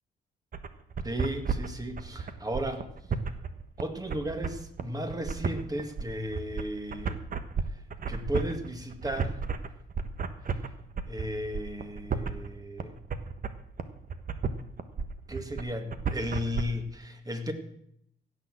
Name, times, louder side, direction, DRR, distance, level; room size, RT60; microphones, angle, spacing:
sound 1, 0.5-16.6, right 5 dB, 45° right, 1.3 m, -33 dB
voice 1, 1.0-2.9 3.8-7.2 8.1-9.4 11.1-13.0 15.3-17.5, equal, 20° right, 6 dB, 2.1 m, -34 dB
16.5 x 6.6 x 7.6 m, 0.73 s
cardioid pair, 90°, 20 cm